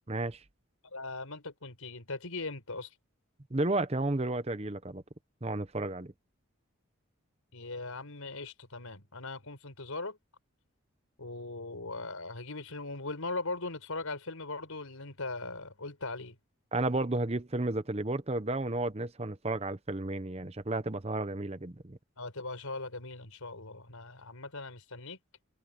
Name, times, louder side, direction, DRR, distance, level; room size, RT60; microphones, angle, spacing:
voice 1, 0.1-0.4 3.5-5.0 5.4-6.1 16.7-22.0, right 2 dB, 30° right, 0.9 m, -32 dB
voice 2, 0.8-2.9 7.5-10.2 11.2-16.4 22.2-25.2, left 3 dB, 90° left, 5.1 m, -39 dB
head